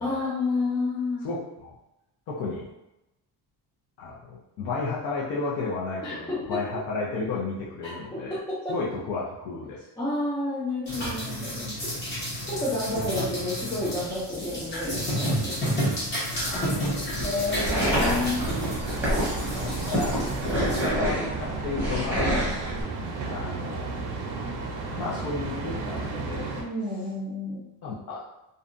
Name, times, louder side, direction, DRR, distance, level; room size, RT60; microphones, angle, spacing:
voice 1, 0.0-1.3 6.0-6.6 8.1-8.7 10.0-11.7 12.4-15.9 17.2-18.5 22.2-22.4 26.6-27.6, left 2 dB, 10° left, -8 dB, 0.3 m, -30 dB
voice 2, 1.2-1.8 2.3-2.7 4.0-8.4 8.7-9.9 16.2-17.4 19.5-20.2 20.6-22.4 23.3-24.0 25.0-26.6 27.8-28.2, left 3 dB, 60° left, -5 dB, 0.6 m, -33 dB
sound 1, 10.9-20.9, equal, 25° left, 0.9 m, -31 dB
sound 2, 16.3-22.8, equal, 5° right, 0.8 m, -28 dB
sound 3, 18.1-26.6, right 3 dB, 65° right, 0.6 m, -33 dB
2.6 x 2.2 x 2.4 m, 0.91 s
cardioid pair, 165°, 41 cm